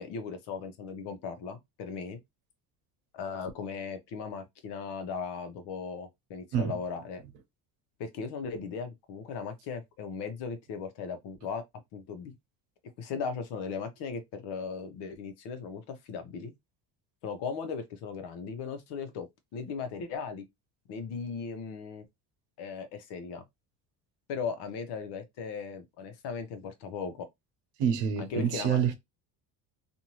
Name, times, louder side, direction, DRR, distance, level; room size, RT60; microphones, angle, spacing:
voice 1, 0.0-2.2 3.1-7.2 8.0-11.6 11.9-12.3 13.0-16.5 17.2-19.3 19.5-20.4 20.9-22.0 22.6-23.4 24.3-27.3 28.2-28.9, left 5 dB, 70° left, 1.0 m, -37 dB
voice 2, 27.8-28.9, right 8 dB, 90° right, 0.9 m, -27 dB
2.7 x 2.6 x 3.0 m
cardioid pair, 120°, 41 cm